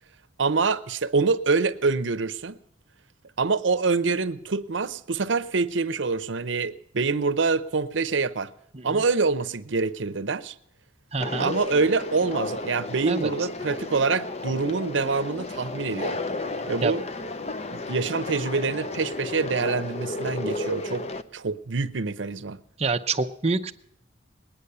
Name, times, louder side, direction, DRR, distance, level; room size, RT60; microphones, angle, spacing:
voice 1, 0.4-2.6 3.4-8.5 8.8-10.5 11.4-16.2 16.7-17.0 17.7-21.1 21.3-22.6, right 4 dB, 80° right, 0.7 m, -25 dB
voice 2, 11.1-11.5 13.1-13.3 16.8-16.9 22.8-23.7, right 3 dB, 35° right, 0.7 m, -26 dB
Conversation, 11.2-21.2, left 2 dB, 35° left, 0.6 m, -33 dB
20.0 x 10.0 x 6.8 m
head